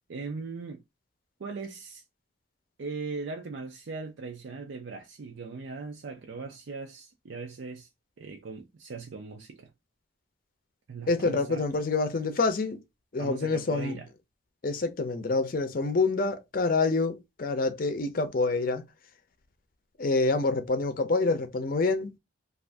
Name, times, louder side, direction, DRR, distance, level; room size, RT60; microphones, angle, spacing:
voice 1, 0.1-0.8 1.4-2.0 2.8-7.9 8.2-9.7 10.9-11.7 13.2-14.1, right 4 dB, 70° right, 0.4 m, -39 dB
voice 2, 11.1-12.8 13.1-14.0 14.6-18.8 20.0-22.1, left 3 dB, 45° left, 0.5 m, -27 dB
2.5 x 2.4 x 3.3 m
head